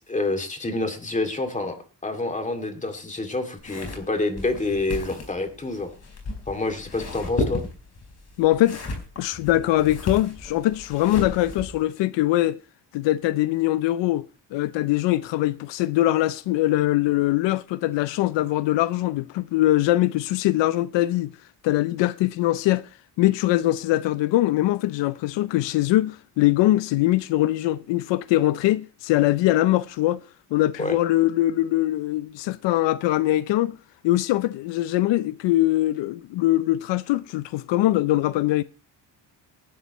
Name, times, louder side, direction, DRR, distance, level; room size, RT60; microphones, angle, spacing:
voice 1, 0.1-5.9 6.5-7.6 30.8-31.0, left 2 dB, 15° left, 2.4 m, -28 dB
sound 1, 3.6-11.8, left 3 dB, 35° left, 4.5 m, -34 dB
voice 2, 8.4-8.8 9.2-12.6 12.9-14.2 14.5-21.3 21.6-22.9 23.2-30.2 30.5-33.8 34.0-38.6, left 15 dB, 85° left, 0.6 m, -22 dB
18.0 x 11.5 x 3.1 m
cardioid pair, 130°, 43 cm